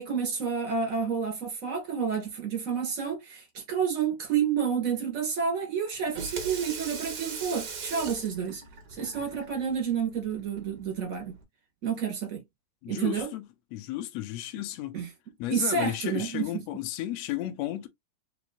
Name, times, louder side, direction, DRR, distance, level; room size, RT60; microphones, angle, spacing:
voice 1, 0.0-8.6 8.9-11.3 11.8-12.4 12.9-13.3 14.9-15.1 15.5-16.5, right 6 dB, 35° right, 1.7 m, -29 dB
Water tap faucet / Sink (filling or washing), 5.9-11.4, right 5 dB, 60° right, 1.0 m, -40 dB
voice 2, 12.8-13.4 13.7-15.0 15.4-17.9, left 13 dB, 70° left, 1.7 m, -33 dB
4.9 x 4.0 x 2.5 m
omnidirectional pair, 3.6 m